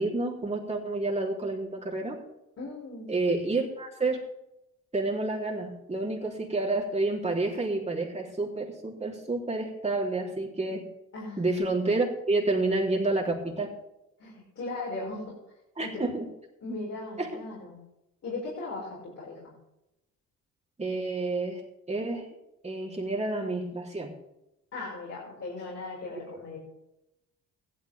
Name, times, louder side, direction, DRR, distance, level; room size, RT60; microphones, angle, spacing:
voice 1, 0.0-2.2 3.1-4.2 4.9-10.9 11.4-13.7 15.8-16.3 16.6-16.8 17.2-17.3 20.8-21.6 21.9-22.3 22.6-24.1, right 2 dB, 20° right, -2 dB, 3.7 m, -29 dB
voice 2, 2.6-3.1 11.1-11.4 14.2-15.3 15.8-16.0 16.6-17.8 18.2-19.5 24.7-26.6, left 3 dB, 55° left, -5 dB, 5.8 m, -38 dB
16.0 x 12.0 x 3.6 m, 0.89 s
cardioid pair, 90°, 30 cm